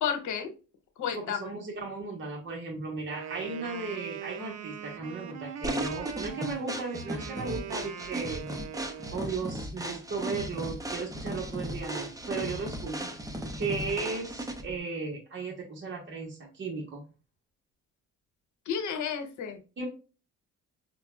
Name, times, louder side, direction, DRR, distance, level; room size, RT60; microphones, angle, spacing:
voice 1, 0.0-0.5 1.0-1.6 18.7-19.6, left 7 dB, 75° left, 6 dB, 1.1 m, -31 dB
voice 2, 1.1-8.5 9.1-17.1 19.8-19.9, right 4 dB, 40° right, 0 dB, 1.2 m, -36 dB
Wind instrument woodwind instrument, 3.1-9.3, right 8 dB, 60° right, 0.6 m, -41 dB
sound 1, 5.6-14.8, right 1 dB, 10° right, 0.7 m, -36 dB
5.5 x 2.3 x 2.3 m, 0.33 s
cardioid pair, 90°, 30 cm